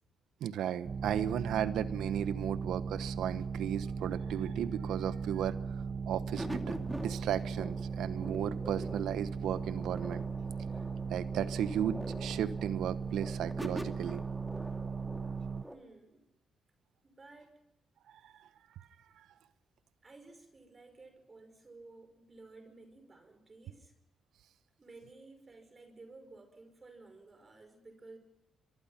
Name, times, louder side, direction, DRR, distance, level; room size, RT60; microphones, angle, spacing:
voice 1, 0.4-5.6 6.1-6.8 7.0-10.2 11.1-14.2, right 10 dB, 85° right, 14 dB, 1.0 m, -35 dB
sound 1, 0.8-15.6, right 5 dB, 50° right, 0.8 m, -38 dB
sound 2, 6.4-15.8, equal, 5° right, 2.5 m, -45 dB
voice 2, 15.7-16.3 17.0-17.5 20.0-23.9 24.8-28.2, right 3 dB, 35° right, 7 dB, 5.7 m, -55 dB
24.5 x 23.5 x 5.8 m, 0.85 s
cardioid pair, 65°, 0 cm